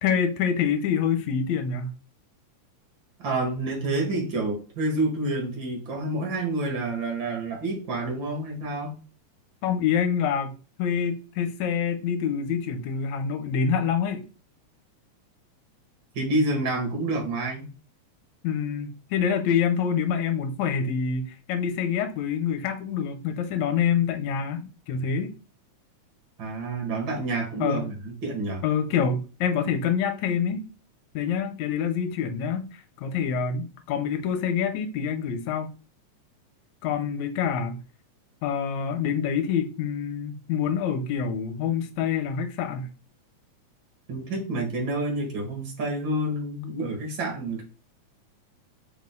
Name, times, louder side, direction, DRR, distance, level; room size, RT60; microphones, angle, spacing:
voice 1, 0.0-1.9 9.6-10.5 10.8-14.2 18.4-25.3 27.6-27.8 28.6-30.6 31.1-32.7 33.0-35.7 36.8-37.8 38.4-42.9, left 7 dB, 70° left, 2.1 m, -26 dB
voice 2, 3.2-8.9 16.1-17.7 26.4-28.7 44.1-47.6, right 2 dB, 40° right, 2.5 m, -28 dB
5.3 x 4.8 x 3.9 m
omnidirectional pair, 3.5 m